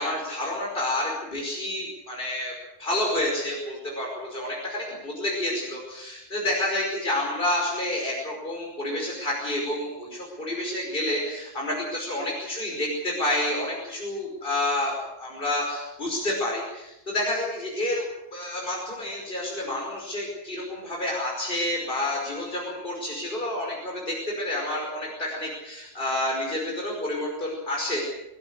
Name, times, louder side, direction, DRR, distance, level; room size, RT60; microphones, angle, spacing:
voice 1, 0.0-2.5 2.8-28.0, left 1 dB, 45° left, -2 dB, 5.6 m, -29 dB
24.0 x 16.5 x 8.1 m, 0.91 s
omnidirectional pair, 1.2 m